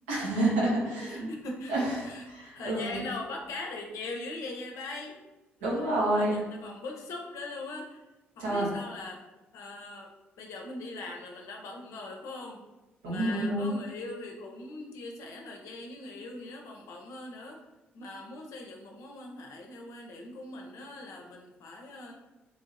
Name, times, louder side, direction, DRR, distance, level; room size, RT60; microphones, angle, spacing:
voice 1, 0.1-1.3 1.7-3.0 5.6-6.4 8.4-8.7 13.0-13.7, right 1 dB, 80° right, -5 dB, 0.9 m, -28 dB
voice 2, 1.1-1.7 2.0-5.2 5.6-8.0 8.4-9.2 9.5-10.1 10.4-12.6 13.0-17.6 17.9-22.1, left 2 dB, 65° left, 1 dB, 0.6 m, -41 dB
2.9 x 2.8 x 2.5 m, 1.1 s
hypercardioid pair, 40°, 6 cm